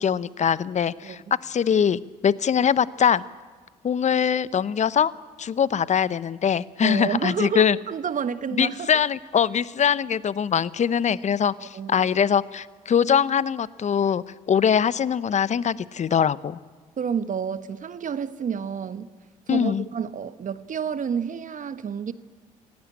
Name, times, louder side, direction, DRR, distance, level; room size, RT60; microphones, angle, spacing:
voice 1, 0.0-3.2 3.8-5.1 5.4-7.8 8.6-16.6 19.5-19.8, left 7 dB, 40° left, 18 dB, 0.8 m, -22 dB
voice 2, 6.8-8.9 11.6-12.1 17.0-19.1 19.5-22.1, right 7 dB, 45° right, 13 dB, 1.3 m, -29 dB
26.0 x 17.0 x 8.6 m, 1.4 s
hypercardioid pair, 50°, 17 cm